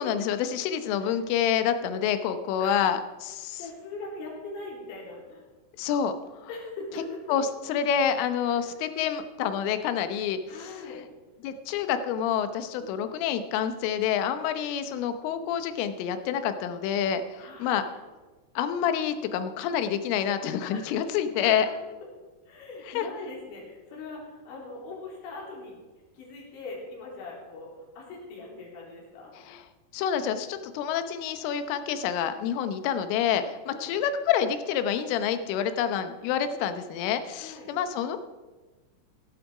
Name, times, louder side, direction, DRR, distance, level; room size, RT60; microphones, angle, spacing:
voice 1, 0.0-3.6 5.8-6.1 7.3-10.4 10.9-11.0 11.4-17.2 17.6-17.8 18.6-21.7 23.0-23.1 29.5-29.6 29.9-38.2, left 8 dB, 85° left, 9 dB, 3.5 m, -27 dB
voice 2, 3.6-5.4 6.5-7.4 8.4-8.8 10.5-11.0 12.8-13.1 15.2-15.4 17.3-18.0 19.7-19.9 20.7-21.1 21.4-21.5 22.5-25.8 26.1-29.3 33.7-34.0 37.4-37.7, left 3 dB, 70° left, -3 dB, 5.8 m, -41 dB
16.0 x 12.0 x 4.9 m, 1.2 s
omnidirectional pair, 5.6 m